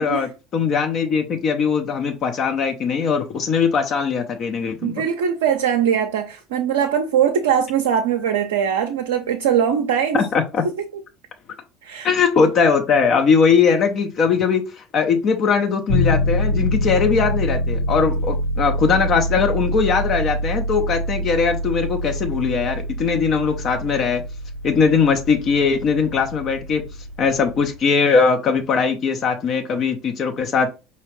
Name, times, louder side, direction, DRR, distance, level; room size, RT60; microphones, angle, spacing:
voice 1, 0.0-4.9 10.1-10.6 12.0-24.2 24.6-26.8 27.2-30.7, left 5 dB, 45° left, 0.5 m, -20 dB
voice 2, 4.8-10.2 10.6-10.8 11.8-12.1, right 8 dB, 75° right, 0.4 m, -21 dB
sound 1, 15.9-27.8, equal, 70° left, 1.1 m, -25 dB
4.8 x 2.8 x 3.0 m
hypercardioid pair, 70°, 0 cm